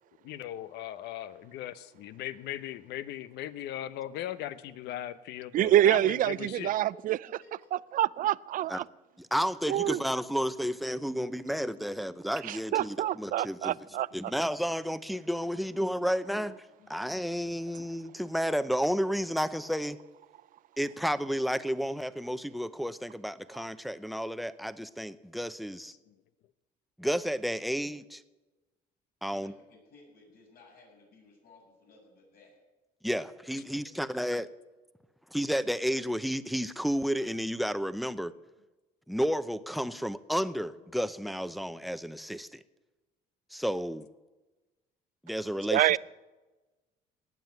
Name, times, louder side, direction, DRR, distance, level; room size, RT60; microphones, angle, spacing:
voice 1, 0.2-6.7 26.1-26.2, left 12 dB, 85° left, 0.9 m, -38 dB
voice 2, 5.5-7.2 7.9-8.8 9.7-10.0 12.5-14.1 45.7-46.0, right 12 dB, 55° right, 0.4 m, -26 dB
voice 3, 6.3-7.0 7.2-7.7 29.2-32.6 33.8-34.0, left 3 dB, 60° left, 7.4 m, -57 dB
voice 4, 9.2-13.8 14.1-20.0 20.8-25.9 27.0-28.2 29.2-29.5 33.0-34.5 35.3-38.3 39.1-42.6 43.5-44.1 45.2-46.0, equal, ahead, 0.7 m, -31 dB
18.5 x 7.5 x 9.3 m
cardioid pair, 110°, 17 cm